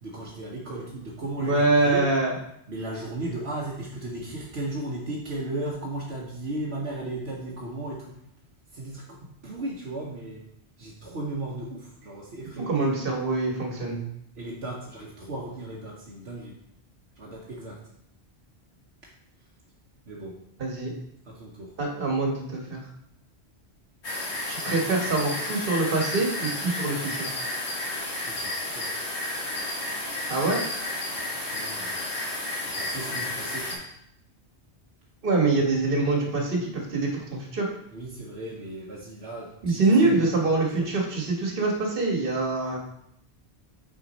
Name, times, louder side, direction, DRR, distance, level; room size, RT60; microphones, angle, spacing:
voice 1, 0.0-2.1 2.7-8.2 8.7-10.5 10.8-12.7 14.4-16.5 17.2-17.9 20.1-20.4 21.2-21.8 28.2-28.9 31.0-32.0 32.6-33.8 37.9-40.3 40.7-40.9, right 1 dB, 75° right, -4 dB, 1.2 m, -36 dB
voice 2, 1.4-2.3 12.7-14.0 20.6-20.9 21.8-22.8 24.5-27.3 30.3-30.6 35.2-37.7 39.6-42.8, right 3 dB, 55° right, 0 dB, 1.5 m, -24 dB
sound 1, 24.0-33.8, left 1 dB, 85° left, 1.8 m, -32 dB
6.0 x 4.8 x 4.1 m, 0.74 s
omnidirectional pair, 1.1 m